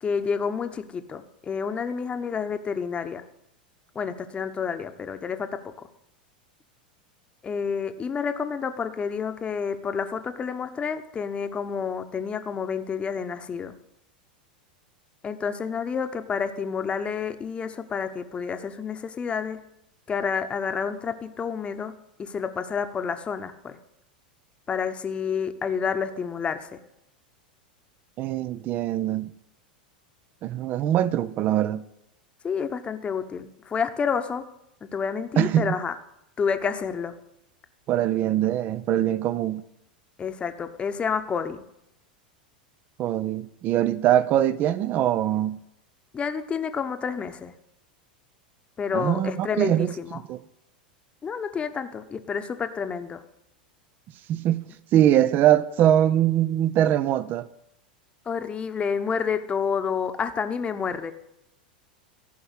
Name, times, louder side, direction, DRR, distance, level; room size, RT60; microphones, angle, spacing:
voice 1, 0.0-3.2 3.9-5.9 7.4-13.7 15.2-19.6 20.1-23.8 24.7-26.7 32.4-34.4 34.8-35.9 36.4-37.1 40.2-41.6 46.1-47.5 48.8-50.2 51.2-53.2 58.3-61.1, left 6 dB, 25° left, 1.0 m, -29 dB
voice 2, 28.2-29.3 30.4-31.8 35.4-35.8 37.9-39.6 43.0-45.6 48.9-49.9 50.3-50.4 54.3-54.7 54.9-57.5, right 11 dB, 40° right, 0.7 m, -22 dB
14.5 x 5.6 x 8.2 m
hypercardioid pair, 95°, 5 cm